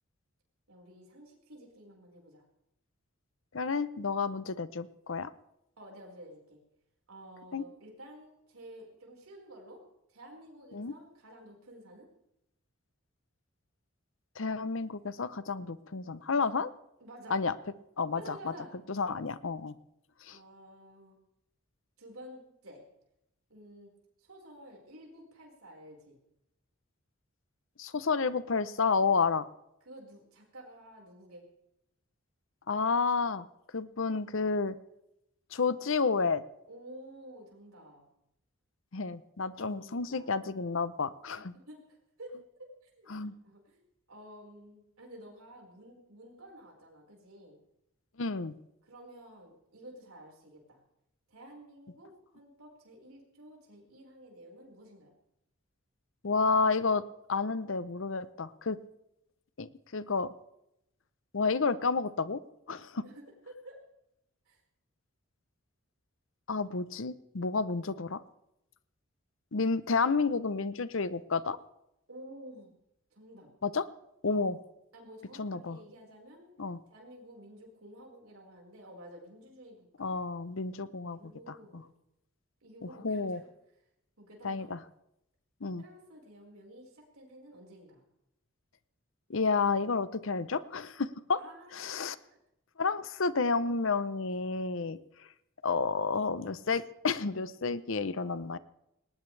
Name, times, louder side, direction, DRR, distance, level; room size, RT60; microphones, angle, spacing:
voice 1, 0.7-2.4 5.8-6.6 7.1-9.8 10.1-12.1 17.0-17.4 18.1-19.0 20.3-21.2 22.0-22.8 23.5-23.9 24.2-26.2 29.8-31.4 36.7-38.0 39.6-40.5 41.3-42.7 42.9-43.1 43.4-43.8 44.1-47.6 48.8-50.8 51.3-55.1 62.9-63.8 64.4-64.6 72.1-72.7 73.1-73.5 74.3-74.5 74.9-76.5 76.9-80.2 81.0-81.9 82.6-83.5 84.2-84.7 85.8-88.0 91.4-92.4, right 1 dB, 85° right, -1 dB, 4.9 m, -51 dB
voice 2, 3.5-5.3 7.5-7.6 10.7-10.9 14.4-16.7 17.3-17.5 18.0-18.5 18.9-19.7 20.2-20.4 27.8-29.5 32.7-33.5 33.7-34.7 35.5-36.4 38.9-41.5 43.1-43.3 48.2-48.6 56.2-57.0 57.3-58.8 59.6-60.3 61.3-62.4 62.7-63.0 66.5-68.2 69.5-71.6 73.6-73.8 74.2-74.6 75.4-75.8 76.6-76.8 80.0-81.8 82.8-83.4 84.4-84.8 85.6-85.8 89.3-91.4 91.7-92.2 92.8-95.3 95.6-98.6, left 4 dB, 65° left, 15 dB, 0.8 m, -30 dB
19.5 x 19.0 x 3.3 m, 0.83 s
head